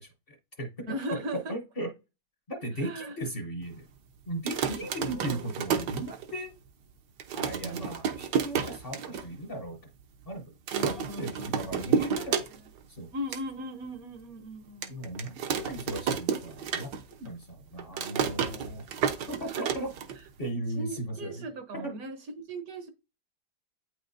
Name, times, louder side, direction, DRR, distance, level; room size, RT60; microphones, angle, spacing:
voice 1, 0.0-0.9 1.5-1.9 2.5-3.9 4.3-6.5 7.3-9.8 10.3-12.4 12.9-13.1 14.9-19.9 20.4-21.5 21.7-21.9, right 1 dB, 40° left, 0.9 m, -37 dB
voice 2, 0.9-1.5 2.8-3.2 5.0-5.4 7.6-8.0 10.7-12.1 13.1-14.9 19.4-19.7 20.8-22.9, right 1 dB, 60° right, 1.1 m, -38 dB
sound 1, 4.3-6.6 6.9-7.0 7.2-9.3 9.6-9.7 9.9-10.3 10.7-12.8 13.1-13.4 14.0-14.1 14.8-17.3 17.5-20.5, right 7 dB, 80° right, 1.4 m, -31 dB
8.7 x 4.9 x 2.6 m
omnidirectional pair, 1.8 m